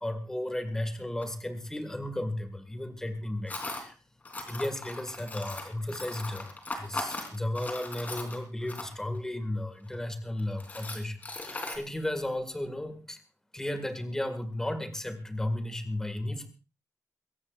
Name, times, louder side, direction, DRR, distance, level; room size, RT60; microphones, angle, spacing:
voice 1, 0.0-4.0 4.5-13.2 13.5-16.5, left 1 dB, 10° left, 8 dB, 1.9 m, -34 dB
Tools, 1.2-1.3 3.5-3.9 4.3-9.2 9.9-10.0 10.4-11.8, left 2 dB, 30° left, 3.5 m, -38 dB
23.0 x 17.0 x 2.5 m, 0.32 s
wide cardioid pair, 175°, 6 cm